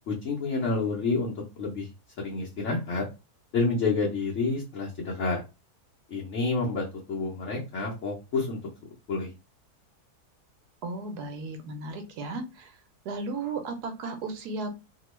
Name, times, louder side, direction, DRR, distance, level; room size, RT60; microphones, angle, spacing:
voice 1, 0.1-1.9 2.2-3.0 3.5-5.4 6.1-8.6 9.1-9.3, left 3 dB, 60° left, -2 dB, 0.9 m, -29 dB
voice 2, 10.8-12.8 13.0-14.7, right 3 dB, 85° right, 7 dB, 1.2 m, -35 dB
2.9 x 2.2 x 3.0 m, 0.28 s
omnidirectional pair, 1.7 m